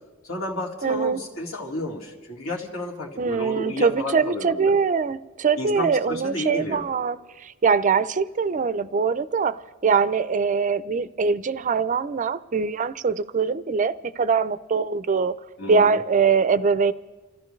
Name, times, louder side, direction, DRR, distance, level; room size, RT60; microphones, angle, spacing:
voice 1, 0.2-4.7 5.6-6.8 15.6-16.0, left 2 dB, 80° left, -2 dB, 2.3 m, -32 dB
voice 2, 0.8-1.2 3.2-15.3 15.7-16.9, right 5 dB, 40° right, 15 dB, 0.4 m, -23 dB
30.0 x 14.0 x 3.2 m, 1.3 s
head